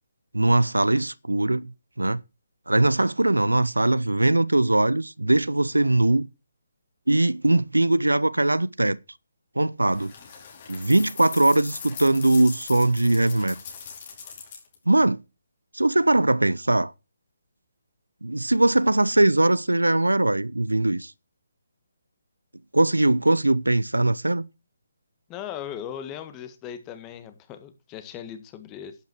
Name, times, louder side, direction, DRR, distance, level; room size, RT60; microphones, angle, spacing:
voice 1, 0.3-1.7 2.0-2.2 2.7-6.3 7.1-9.0 9.6-10.1 10.7-13.6 14.9-15.2 15.7-16.9 18.2-21.1 22.7-24.4, right 2 dB, 90° right, 0.6 m, -21 dB
sound 1, 9.9-14.7, left 6 dB, 35° left, 4.8 m, -40 dB
voice 2, 25.3-29.0, left 9 dB, 20° left, 1.7 m, -38 dB
11.5 x 9.4 x 4.7 m
figure-of-eight pair, 145°, 0 cm